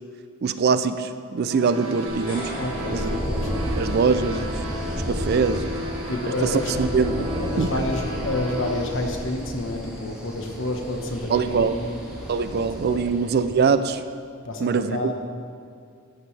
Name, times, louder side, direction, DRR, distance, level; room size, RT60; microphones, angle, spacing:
voice 1, 0.4-2.5 2.9-3.1 3.8-4.5 5.1-5.7 6.4-7.2 7.6-7.7 11.3-11.7 12.3-14.0 14.6-15.1, right 5 dB, 45° right, 11 dB, 0.3 m, -23 dB
sound 1, 1.5-8.8, equal, 75° right, 1.0 m, -33 dB
sound 2, 1.8-13.5, equal, 5° right, 1.7 m, -32 dB
sound 3, 2.1-4.4, left 1 dB, 45° left, 2.4 m, -41 dB
voice 2, 2.6-3.7 5.8-6.7 7.2-12.0 12.7-13.2 14.4-15.1, left 1 dB, 60° left, 3 dB, 1.1 m, -29 dB
13.5 x 8.2 x 3.3 m, 2.4 s
head